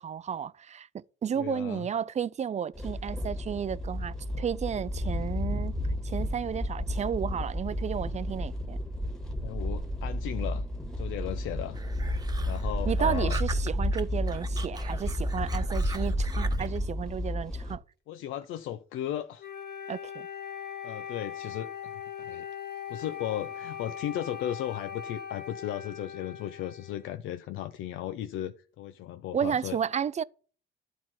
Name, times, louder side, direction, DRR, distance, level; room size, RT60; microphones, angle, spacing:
voice 1, 0.0-5.8 6.0-8.8 12.9-17.8 19.9-20.1 29.3-30.2, right 8 dB, 35° right, 0.4 m, -32 dB
voice 2, 1.3-1.9 9.4-10.7 11.0-11.8 12.5-13.4 18.1-19.5 20.8-21.9 22.2-22.5 22.9-29.8, left 11 dB, 90° left, 0.6 m, -36 dB
sound 1, 2.7-17.8, left 1 dB, 5° left, 1.8 m, -31 dB
sound 2, 11.7-14.0 14.3-16.8, right 3 dB, 20° right, 1.0 m, -42 dB
Wind instrument woodwind instrument, 19.4-27.1, left 8 dB, 55° left, 2.0 m, -40 dB
11.0 x 4.6 x 5.8 m
cardioid pair, 90°, 20 cm